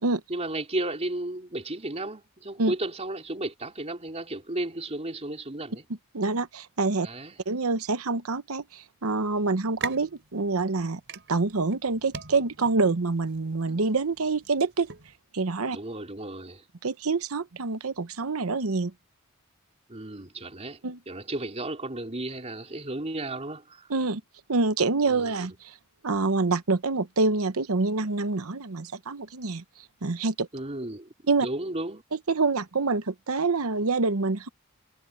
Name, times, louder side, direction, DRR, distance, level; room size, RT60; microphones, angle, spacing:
voice 1, 0.3-5.8 7.0-7.4 15.7-16.6 19.9-20.8 21.1-23.9 25.1-25.3 30.5-31.1 31.4-32.0, right 1 dB, 30° right, 3.8 m, -34 dB
voice 2, 6.1-7.1 7.5-11.0 11.3-14.9 15.3-15.8 16.8-18.9 20.8-21.0 23.9-24.2 24.5-25.7 26.0-29.6 30.0-30.5 31.3-31.5 32.3-34.5, right 3 dB, 80° right, 1.0 m, -26 dB
sound 1, 9.5-15.1, right 3 dB, 60° right, 3.7 m, -43 dB
head